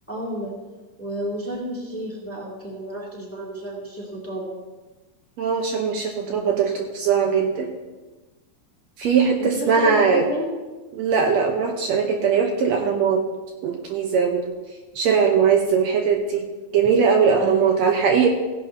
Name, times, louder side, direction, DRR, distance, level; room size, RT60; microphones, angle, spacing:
voice 1, 0.1-0.5 1.0-4.6 6.2-6.5 9.4-10.5 17.4-17.8, equal, 5° left, -4 dB, 1.8 m, -31 dB
voice 2, 5.4-7.7 9.0-10.3 10.9-13.2 13.6-14.5 15.0-16.5 16.7-18.3, right 6 dB, 70° right, 2 dB, 2.0 m, -20 dB
16.5 x 11.0 x 2.7 m, 1.2 s
omnidirectional pair, 3.5 m